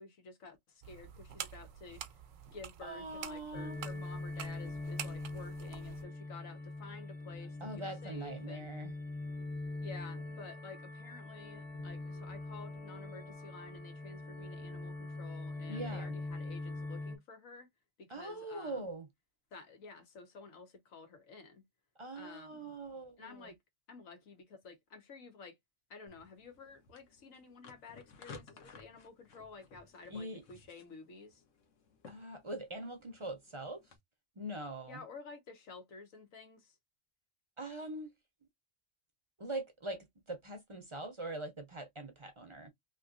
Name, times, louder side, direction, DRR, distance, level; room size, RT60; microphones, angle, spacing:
voice 1, 0.0-2.0 2.5-8.7 9.8-17.7 18.0-18.9 19.5-21.6 22.1-22.7 23.2-23.6 23.9-25.6 25.9-31.4 34.9-36.8, left 4 dB, 90° left, 1.5 m, -52 dB
sound 1, 0.8-6.0, right 9 dB, 80° right, 1.0 m, -47 dB
voice 2, 2.8-3.8 7.6-8.9 15.7-16.1 18.1-19.1 22.0-23.5 30.1-30.4 32.1-33.8 34.4-35.0 37.6-38.1 39.4-42.7, right 1 dB, 35° right, 0.5 m, -42 dB
sound 2, 3.5-17.2, left 2 dB, 40° left, 0.7 m, -43 dB
sound 3, 26.1-34.0, left 4 dB, 70° left, 1.2 m, -57 dB
3.1 x 3.0 x 2.4 m
omnidirectional pair, 1.3 m